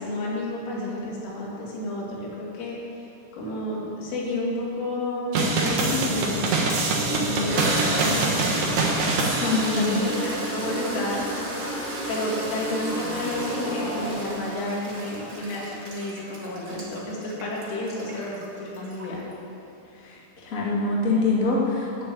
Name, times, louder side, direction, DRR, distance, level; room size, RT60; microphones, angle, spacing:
voice 1, 0.0-3.1 3.4-6.6 7.1-8.5 9.4-11.3 12.1-19.2, left 1 dB, 80° left, -4 dB, 4.9 m, -31 dB
sound 1, 5.3-10.3, right 3 dB, 70° right, 1.8 m, -25 dB
Toilet flush, 6.8-19.3, right 1 dB, 45° right, 1.2 m, -32 dB
voice 2, 9.4-10.0 20.4-22.1, left 3 dB, 60° left, -5 dB, 0.8 m, -24 dB
11.5 x 7.5 x 8.4 m, 2.7 s
omnidirectional pair, 5.6 m